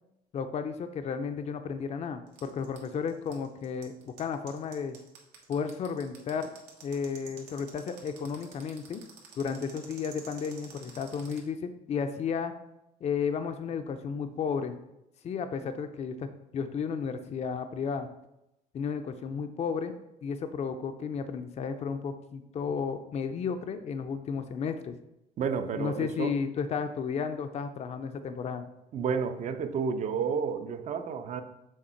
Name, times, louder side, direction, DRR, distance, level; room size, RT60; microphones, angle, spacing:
voice 1, 0.3-5.0 5.5-6.5 6.8-9.0 9.4-12.5 13.0-14.8 15.2-18.1 18.7-19.9 20.2-25.0 25.8-28.6, left 6 dB, 40° left, 8 dB, 0.5 m, -33 dB
sound 1, 2.3-11.4, right 7 dB, 85° right, 1.4 m, -49 dB
voice 2, 25.4-26.3 28.9-31.4, right 6 dB, 45° right, 9 dB, 0.6 m, -31 dB
6.5 x 3.4 x 4.4 m, 0.87 s
cardioid pair, 110°, 17 cm